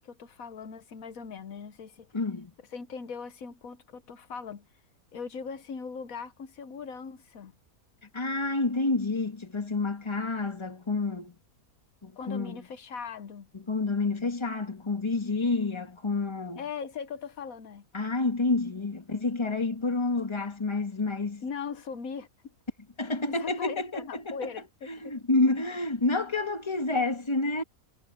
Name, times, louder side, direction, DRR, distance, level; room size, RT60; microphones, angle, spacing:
voice 1, 0.0-2.1 2.7-4.7 5.1-7.5 12.1-13.5 16.6-17.8 21.4-22.3 23.1-25.2, left 6 dB, 70° left, 1.4 m, -39 dB
voice 2, 2.1-2.5 8.1-11.3 12.0-12.6 13.5-16.6 17.9-21.4 23.0-24.5 24.9-27.6, left 3 dB, 20° left, 1.6 m, -29 dB
omnidirectional pair, 1.5 m